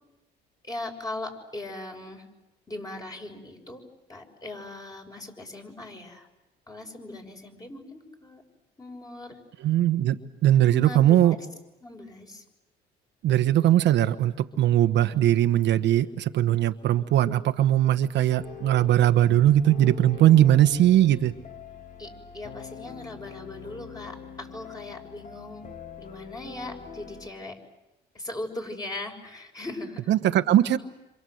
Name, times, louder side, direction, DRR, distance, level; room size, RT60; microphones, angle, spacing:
voice 1, 0.6-2.2 2.7-3.8 4.1-6.3 6.7-8.4 8.8-9.4 10.5-11.4 11.8-12.4 22.0-25.7 26.0-27.6 28.1-30.1, left 2 dB, 20° left, 3 dB, 6.2 m, -39 dB
voice 2, 9.6-11.4 13.2-21.3 30.1-30.8, right 12 dB, 70° right, 9 dB, 1.2 m, -20 dB
sound 1, 18.4-27.3, left 6 dB, 45° left, 2.5 m, -43 dB
27.5 x 27.0 x 7.9 m, 0.96 s
cardioid pair, 90°, 19 cm